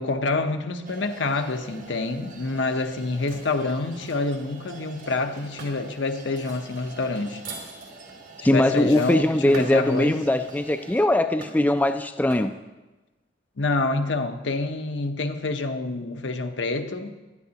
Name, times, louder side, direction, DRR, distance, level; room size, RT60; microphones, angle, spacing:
voice 1, 0.0-7.4 8.4-10.2 13.6-17.1, left 3 dB, 75° left, 0.8 m, -27 dB
sound 1, 0.8-11.1, right 3 dB, 45° right, 1.0 m, -45 dB
sound 2, 3.3-4.2 5.0-5.8 6.4-9.9 10.5-10.7 11.4-11.8 12.3-12.5, right 3 dB, 85° right, 3.0 m, -43 dB
voice 2, 8.4-12.5, left 1 dB, 10° left, 0.3 m, -21 dB
17.0 x 11.5 x 2.9 m
head